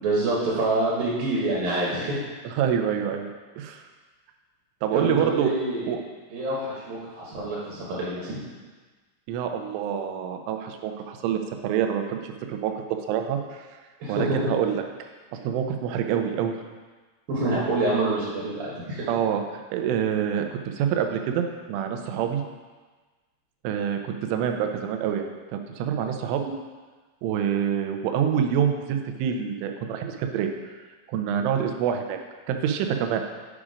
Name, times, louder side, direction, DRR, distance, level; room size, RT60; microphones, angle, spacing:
voice 1, 0.0-2.2 4.9-5.9 6.3-8.4 14.0-14.5 17.3-19.1, right 2 dB, 65° right, -5 dB, 2.3 m, -26 dB
voice 2, 2.4-3.8 4.8-5.5 5.9-6.0 9.3-13.7 14.1-14.8 15.3-16.6 19.1-22.4 23.6-26.6 27.2-30.5 31.1-32.2 32.5-33.3, right 8 dB, 80° right, 5 dB, 2.9 m, -26 dB
8.7 x 5.0 x 5.0 m, 1.3 s
omnidirectional pair, 5.9 m